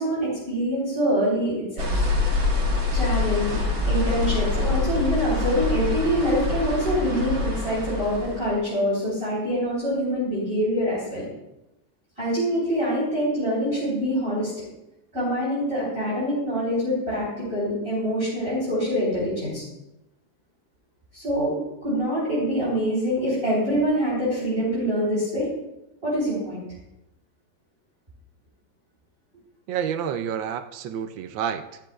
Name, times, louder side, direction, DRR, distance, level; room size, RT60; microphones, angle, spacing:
voice 1, 0.0-1.6 1.8-2.0 2.9-3.5 3.9-11.2 12.2-14.5 15.1-19.6 21.1-25.5 26.0-26.6, equal, 30° right, -8 dB, 4.1 m, -25 dB
sound 1, 1.8-8.5, left 3 dB, 50° right, 1.8 m, -25 dB
voice 2, 29.7-31.8, right 8 dB, 85° right, 9 dB, 1.4 m, -29 dB
13.5 x 11.5 x 2.4 m, 0.92 s
omnidirectional pair, 2.0 m